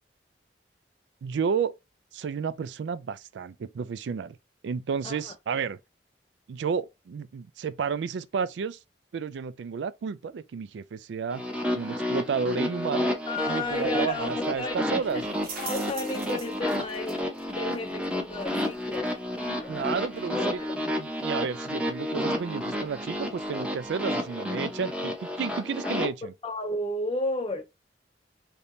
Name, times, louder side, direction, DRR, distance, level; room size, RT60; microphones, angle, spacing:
voice 1, 1.2-1.7 2.1-4.4 4.6-5.8 6.5-8.8 9.1-13.2 13.5-15.2 19.7-20.6 21.0-26.3, right 6 dB, 85° right, 0.4 m, -32 dB
sound 1, 11.3-26.1, left 1 dB, 5° right, 0.8 m, -31 dB
voice 2, 13.3-15.3 15.6-19.7 26.0-26.1 26.4-27.7, left 2 dB, 30° left, 0.5 m, -33 dB
sound 2, 13.5-24.1, right 4 dB, 55° right, 1.1 m, -48 dB
3.5 x 2.9 x 2.6 m
head